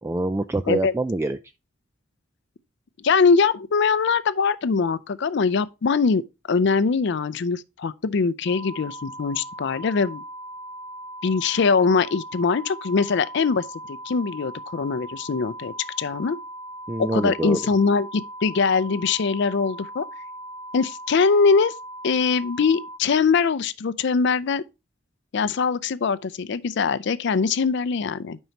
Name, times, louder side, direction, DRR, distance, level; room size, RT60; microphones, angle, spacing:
voice 1, 0.0-1.4 16.9-17.6, right 2 dB, 15° right, 0.3 m, -25 dB
voice 2, 3.0-6.2 6.5-10.2 11.2-16.4 17.0-20.1 20.7-21.7 22.0-24.6 25.3-28.4, left 5 dB, 65° left, 0.4 m, -22 dB
sound 1, 8.5-23.0, right 1 dB, 80° right, 0.7 m, -39 dB
9.0 x 5.5 x 2.8 m
head